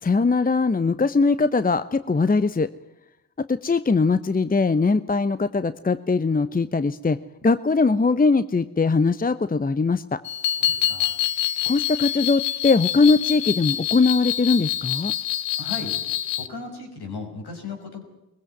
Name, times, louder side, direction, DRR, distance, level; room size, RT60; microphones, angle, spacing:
voice 1, 0.0-2.7 3.4-7.2 7.4-10.2 11.6-15.1, left 4 dB, 20° left, 14 dB, 0.9 m, -21 dB
sound 1, 10.2-16.5, left 12 dB, 80° left, 1.0 m, -26 dB
voice 2, 10.6-11.2 15.6-15.9 16.4-18.0, left 4 dB, 60° left, 3 dB, 5.8 m, -36 dB
20.0 x 16.0 x 9.2 m, 0.94 s
supercardioid pair, 45°, 43 cm